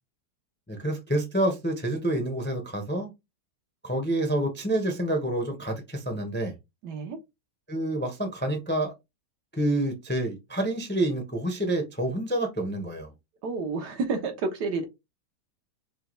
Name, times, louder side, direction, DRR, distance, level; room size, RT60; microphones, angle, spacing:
voice 1, 0.7-3.1 3.8-6.5 7.7-8.9 9.5-13.1, right 1 dB, 10° left, 0.5 m, -28 dB
voice 2, 6.8-7.2 13.4-14.8, right 4 dB, 75° right, 1.6 m, -30 dB
5.5 x 2.3 x 3.1 m
omnidirectional pair, 1.8 m